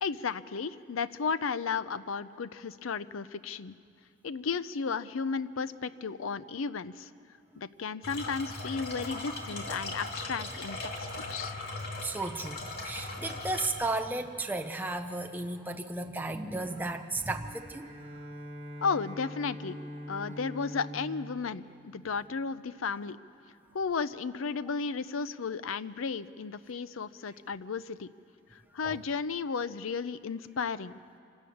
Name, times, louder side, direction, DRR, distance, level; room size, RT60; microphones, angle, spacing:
voice 1, 0.0-3.8 4.2-7.1 7.6-11.5 18.8-19.8 20.1-23.2 23.7-28.1 28.5-31.0, left 5 dB, 85° left, 15 dB, 0.6 m, -34 dB
sound 1, 8.0-13.7, left 2 dB, 50° left, 2.5 m, -39 dB
voice 2, 12.0-18.0 28.8-29.0, right 2 dB, 10° right, 5 dB, 0.6 m, -34 dB
Bowed string instrument, 17.1-22.7, equal, 30° right, 1.6 m, -44 dB
25.5 x 13.0 x 8.6 m, 2.4 s
head